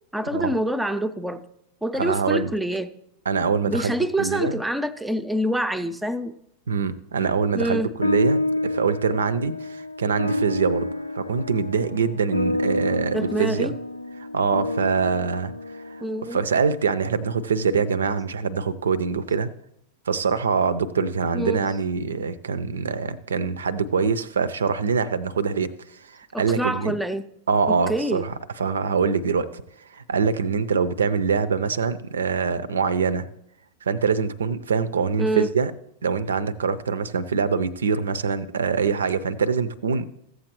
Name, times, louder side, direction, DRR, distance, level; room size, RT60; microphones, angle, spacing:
voice 1, 0.1-1.4 1.8-2.9 3.7-6.3 7.5-7.9 13.1-13.7 16.0-16.4 21.3-21.7 26.3-27.3 27.7-28.3 35.2-35.5, right 1 dB, 5° right, 10 dB, 0.5 m, -26 dB
voice 2, 1.9-2.5 3.3-3.9 4.2-4.6 6.7-10.9 11.1-13.7 14.2-16.0 16.3-19.5 20.1-27.0 27.5-33.3 33.8-35.7 36.0-40.1, right 5 dB, 70° right, 16 dB, 0.5 m, -24 dB
sound 1, 8.0-16.7, left 2 dB, 85° left, 0.3 m, -28 dB
14.5 x 7.8 x 3.0 m, 0.78 s
figure-of-eight pair, 90°, 0 cm